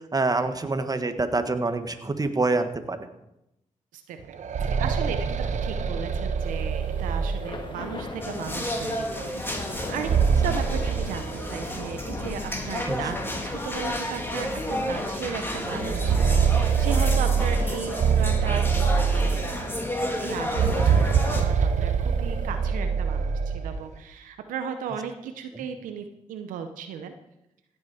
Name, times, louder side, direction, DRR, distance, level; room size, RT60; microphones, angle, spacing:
voice 1, 0.1-3.0 12.8-13.0, right 3 dB, 30° right, 8 dB, 1.5 m, -26 dB
voice 2, 3.9-5.2 5.6-9.4 9.7-10.1 10.4-19.4 20.2-27.1, right 7 dB, 90° right, 8 dB, 0.7 m, -36 dB
sound 1, 4.2-8.0 9.8-12.0 12.3-12.4 13.3-13.4 13.8-14.0 15.6-19.8 20.4-23.8, right 6 dB, 65° right, 1.0 m, -24 dB
Thunder / Rain, 6.3-22.6, left 2 dB, 35° left, 2.2 m, -40 dB
sound 2, 8.2-21.4, left 1 dB, 15° left, 2.7 m, -32 dB
16.0 x 7.2 x 4.9 m, 0.88 s
supercardioid pair, 50°, 13 cm